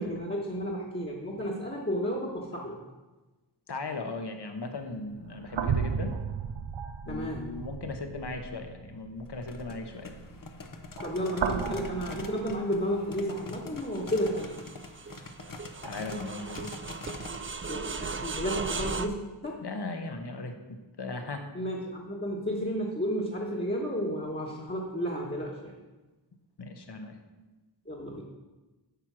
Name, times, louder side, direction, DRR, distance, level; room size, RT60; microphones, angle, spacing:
voice 1, 0.0-2.8 7.1-7.5 11.0-14.5 17.7-19.2 19.4-19.6 21.5-25.7 27.8-28.2, equal, 25° left, -4 dB, 1.3 m, -32 dB
voice 2, 3.7-6.1 7.0-10.2 15.8-16.7 19.6-21.5 26.6-27.2, left 3 dB, 65° left, 5 dB, 1.1 m, -37 dB
sound 1, 4.8-13.2 13.7-13.9 15.8-15.9, right 6 dB, 90° right, 0.6 m, -35 dB
sound 2, 9.3-17.5, left 3 dB, 50° left, 0.8 m, -44 dB
sound 3, 13.4-19.1, right 4 dB, 30° right, 0.4 m, -37 dB
8.8 x 4.5 x 6.1 m, 1.2 s
wide cardioid pair, 55°, 43 cm